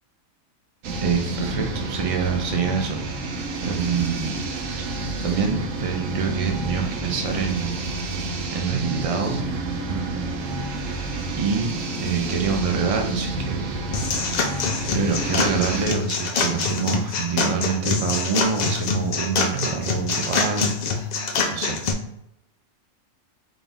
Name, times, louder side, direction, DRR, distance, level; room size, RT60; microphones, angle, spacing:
sound 1, 0.8-15.9, right 2 dB, 90° right, 1.0 m, -29 dB
voice 1, 1.0-3.0 3.6-4.5 4.8-4.9 5.2-7.7 8.5-9.5 9.9-10.4 11.0-13.7 14.9-20.7 21.5-21.8, right 5 dB, 45° right, 3 dB, 0.4 m, -26 dB
sound 2, 13.9-21.9, left 4 dB, 85° left, 0.3 m, -25 dB
4.1 x 2.3 x 3.5 m, 0.82 s
omnidirectional pair, 1.3 m